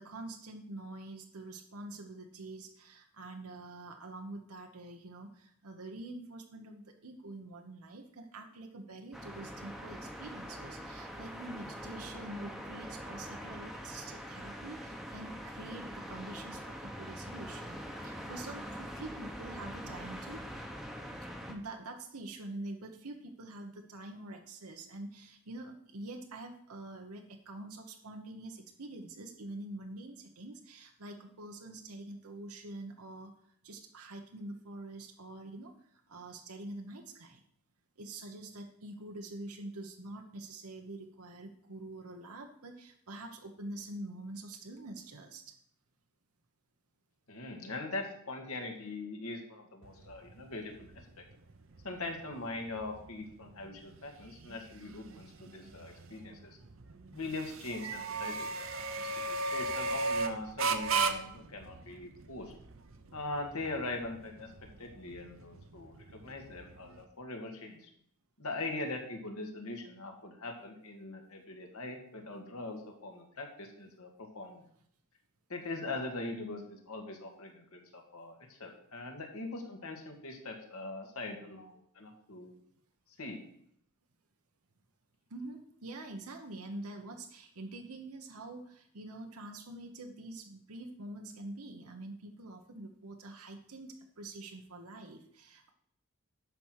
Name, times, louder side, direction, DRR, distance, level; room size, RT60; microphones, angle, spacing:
voice 1, 0.0-17.8 18.0-20.4 21.5-33.3 33.6-37.4 38.0-45.5 85.3-95.7, right 2 dB, 85° right, 3 dB, 1.1 m, -46 dB
sound 1, 9.1-21.5, equal, ahead, 0.9 m, -44 dB
voice 2, 47.3-51.2 51.8-56.6 57.1-62.5 63.1-64.5 64.8-67.9 68.4-74.6 75.5-82.5 83.2-83.4, left 2 dB, 80° left, 2 dB, 2.0 m, -41 dB
sound 2, 49.8-67.0, right 3 dB, 65° right, 0.8 m, -38 dB
11.5 x 4.6 x 6.5 m, 0.68 s
head